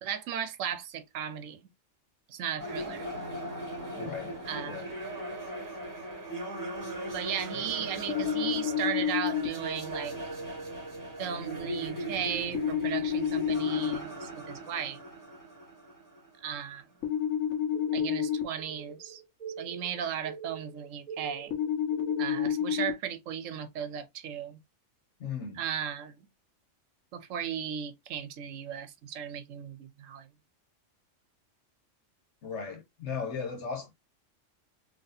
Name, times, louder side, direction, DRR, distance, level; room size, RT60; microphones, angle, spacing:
voice 1, 0.0-1.6 2.3-3.1 4.5-4.9 7.1-10.2 11.2-15.0 16.4-16.9 17.9-19.2 19.6-21.5 22.2-24.6 25.6-26.2 27.1-30.3, right 8 dB, 85° right, 1.0 m, -36 dB
sound 1, 2.6-16.7, right 1 dB, 15° right, 2.1 m, -38 dB
voice 2, 4.0-4.3 4.7-4.9 25.2-25.6 32.4-33.9, left 6 dB, 65° left, 1.6 m, -36 dB
sound 2, 8.1-9.5 12.5-13.9 17.0-18.4 21.5-22.9, left 9 dB, 80° left, 1.2 m, -29 dB
sound 3, 17.7-22.6, right 6 dB, 40° right, 0.6 m, -44 dB
4.0 x 3.1 x 2.6 m
omnidirectional pair, 1.3 m